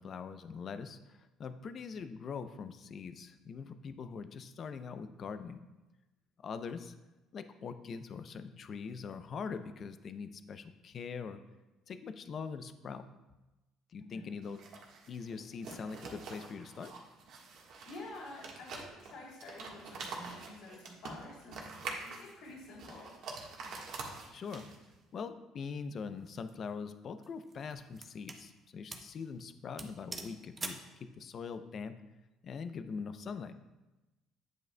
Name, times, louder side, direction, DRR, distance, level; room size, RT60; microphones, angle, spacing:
voice 1, 0.0-5.6 6.4-6.9 7.3-11.4 11.9-13.1 13.9-14.6 15.1-16.9 24.3-24.7 25.1-32.0 32.4-33.5, left 5 dB, 45° left, 10 dB, 0.5 m, -42 dB
voice 2, 14.0-14.3 17.9-21.7 22.0-23.1, left 2 dB, 70° left, -4 dB, 2.7 m, -49 dB
sound 1, 14.4-25.0, right 4 dB, 65° right, 1.3 m, -46 dB
sound 2, 26.2-26.5 27.2-28.5 28.9-29.2 29.4-29.5 29.8-30.9, right 3 dB, 25° right, 0.7 m, -44 dB
9.3 x 8.1 x 2.2 m, 1.1 s
cardioid pair, 115°, 0 cm